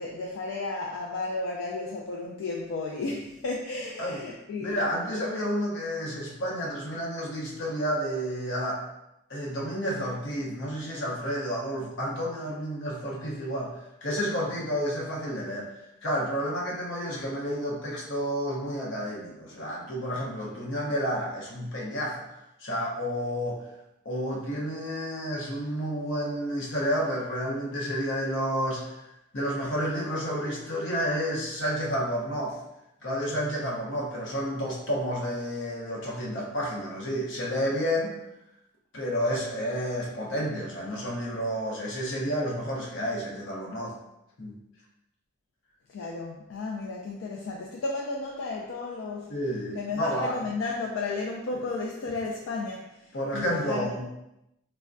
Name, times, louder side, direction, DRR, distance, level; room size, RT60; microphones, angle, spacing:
voice 1, 0.0-4.8 45.9-49.3 49.7-52.8 53.3-53.9, left 3 dB, 85° left, -2 dB, 0.3 m, -33 dB
voice 2, 4.6-8.8 9.3-15.7 16.0-22.2 22.6-23.7 24.0-29.0 29.3-32.6 33.0-38.2 38.9-43.9 44.4-44.6 49.3-50.4 51.5-51.6 53.1-54.1, equal, 70° left, -3 dB, 0.7 m, -30 dB
3.3 x 2.1 x 2.5 m, 0.88 s
head